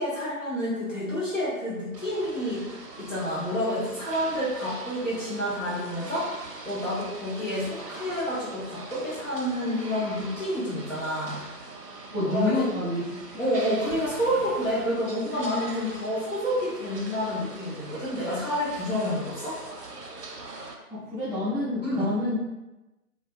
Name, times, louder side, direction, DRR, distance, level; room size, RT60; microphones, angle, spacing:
voice 1, 0.0-2.6 3.0-6.3 6.6-11.4 12.2-12.7 13.4-19.6 21.8-22.1, equal, 55° left, -9 dB, 0.9 m, -29 dB
sound 1, 1.9-20.7, right 3 dB, 90° right, 0.6 m, -42 dB
voice 2, 12.1-13.1 20.9-22.4, left 2 dB, 25° left, -13 dB, 0.9 m, -28 dB
Waves surf, 13.5-15.0, equal, ahead, 0.4 m, -43 dB
2.5 x 2.3 x 2.3 m, 1.0 s
figure-of-eight pair, 165°, 47 cm